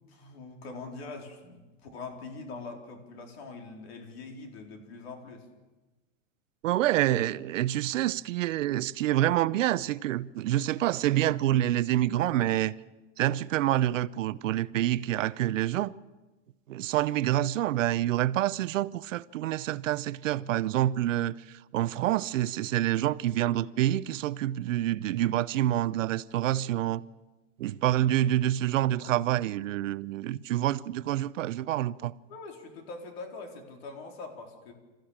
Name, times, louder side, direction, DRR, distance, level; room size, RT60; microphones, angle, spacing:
voice 1, 0.1-5.5 29.0-29.1 32.3-34.7, left 3 dB, 55° left, 4.2 m, -43 dB
voice 2, 6.6-12.7 13.2-15.9 16.7-27.0 27.6-32.1, right 13 dB, 85° right, 0.8 m, -27 dB
27.0 x 15.0 x 7.3 m
supercardioid pair, 175°, 37 cm